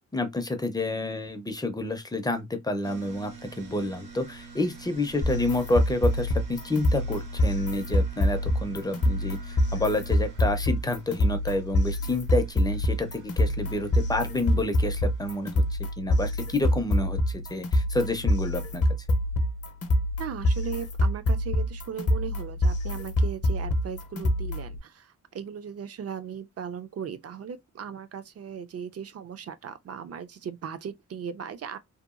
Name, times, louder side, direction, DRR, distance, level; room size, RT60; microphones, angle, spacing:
voice 1, 0.1-18.8, left 2 dB, 15° left, 0.4 m, -29 dB
sound 1, 2.8-15.7, right 4 dB, 80° right, 0.9 m, -47 dB
sound 2, 5.2-24.8, left 1 dB, 55° left, 0.6 m, -26 dB
voice 2, 20.2-31.8, right 7 dB, 55° right, 0.4 m, -37 dB
2.8 x 2.2 x 2.4 m
wide cardioid pair, 135°, 30 cm